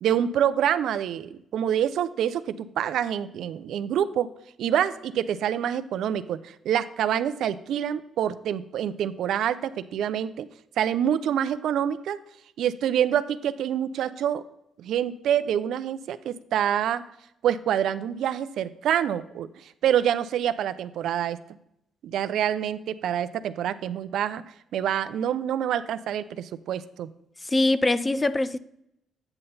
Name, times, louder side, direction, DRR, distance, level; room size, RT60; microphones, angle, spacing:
voice 1, 0.0-4.3 4.6-10.5 10.8-12.2 12.6-14.4 14.8-17.0 17.4-21.4 22.0-27.1, right 9 dB, 75° right, 0.4 m, -26 dB
voice 2, 27.4-28.6, left 2 dB, 20° left, 0.4 m, -23 dB
8.8 x 5.8 x 4.0 m
cardioid pair, 90°, 0 cm